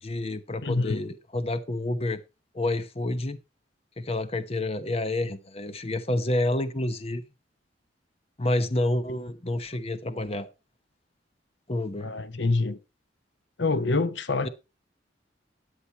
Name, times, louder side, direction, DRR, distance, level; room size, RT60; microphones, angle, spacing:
voice 1, 0.0-2.2 2.5-3.4 4.0-7.2 8.4-10.5 11.7-12.1 14.4-14.5, left 1 dB, 35° left, 0.9 m, -29 dB
voice 2, 0.6-1.0 12.0-12.8 13.6-14.5, left 3 dB, 70° left, 0.9 m, -26 dB
13.0 x 8.9 x 4.3 m
head